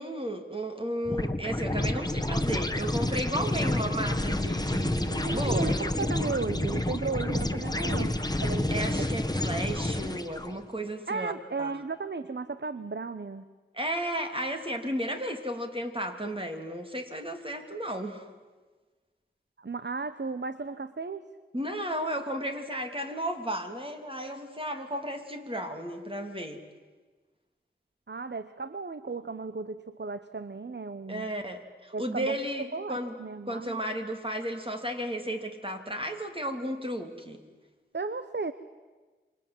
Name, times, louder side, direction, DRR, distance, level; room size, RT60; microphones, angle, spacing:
voice 1, 0.0-5.7 8.7-11.3 11.6-11.7 13.7-18.3 21.5-26.6 31.1-33.2 33.5-37.4, right 1 dB, 25° right, 4 dB, 3.0 m, -34 dB
sound 1, 1.1-10.5, left 1 dB, 20° left, 1.5 m, -29 dB
voice 2, 5.2-9.1 11.1-13.5 19.6-21.2 28.1-31.3 31.9-32.4 32.7-33.8 37.9-38.5, right 4 dB, 65° right, 12 dB, 0.9 m, -35 dB
28.0 x 25.5 x 7.8 m, 1.3 s
wide cardioid pair, 50°, 20 cm